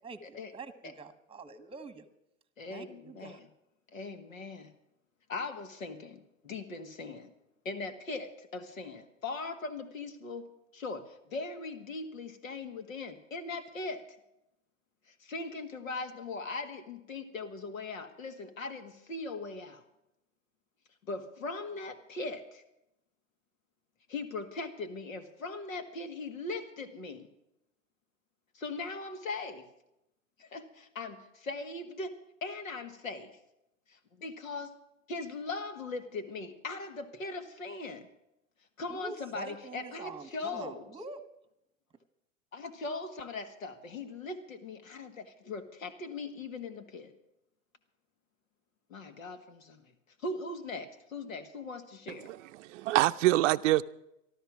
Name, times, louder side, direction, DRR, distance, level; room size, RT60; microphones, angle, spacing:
voice 1, 0.0-2.1 2.7-3.4 38.9-41.3, right 3 dB, 15° right, 1.2 m, -45 dB
voice 2, 2.6-3.4 3.9-4.7 5.3-7.3 7.7-10.5 10.7-14.0 15.1-19.8 21.1-22.6 24.1-27.3 28.5-29.7 30.4-32.1 32.4-33.3 33.9-34.7 35.1-38.1 38.8-40.9 42.5-47.1 48.9-49.8 50.2-52.3, left 3 dB, 80° left, 1.8 m, -40 dB
voice 3, 52.2-53.8, right 16 dB, 65° right, 0.5 m, -26 dB
13.5 x 12.5 x 6.0 m
hypercardioid pair, 95°, 40 cm